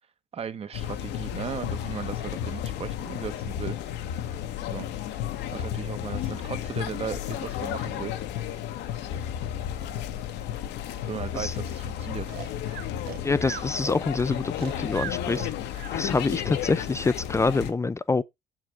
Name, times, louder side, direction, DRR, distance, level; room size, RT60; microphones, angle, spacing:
voice 1, 0.3-3.8 4.7-4.9 5.5-8.1 11.1-12.3, right 7 dB, 35° right, 1.0 m, -36 dB
sound 1, 0.7-17.7, left 10 dB, 85° left, 1.2 m, -33 dB
Breathing, 12.3-16.0, right 12 dB, 65° right, 0.8 m, -39 dB
voice 2, 13.2-15.5 15.9-18.2, left 3 dB, 15° left, 0.4 m, -26 dB
7.8 x 7.5 x 3.4 m
cardioid pair, 110°, 17 cm